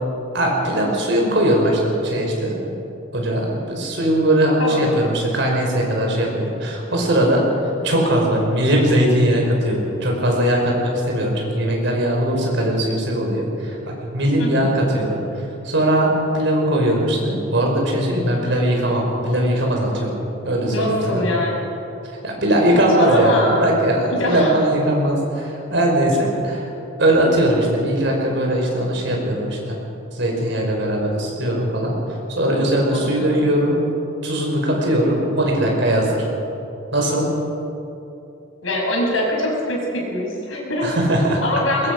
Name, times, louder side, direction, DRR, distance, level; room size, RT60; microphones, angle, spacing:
voice 1, 0.3-2.6 3.1-7.5 7.8-13.8 14.1-20.2 20.5-21.3 22.2-26.7 27.0-29.8 30.1-33.9 34.2-36.2 36.9-37.2 40.8-41.4, right 1 dB, 60° right, -1 dB, 5.3 m, -20 dB
voice 2, 14.4-14.7 20.7-21.7 22.7-23.7 24.1-24.6 32.9-33.4 38.6-40.9 41.4-41.9, left 1 dB, 80° left, -1 dB, 6.0 m, -23 dB
21.5 x 21.0 x 6.3 m, 2.8 s
head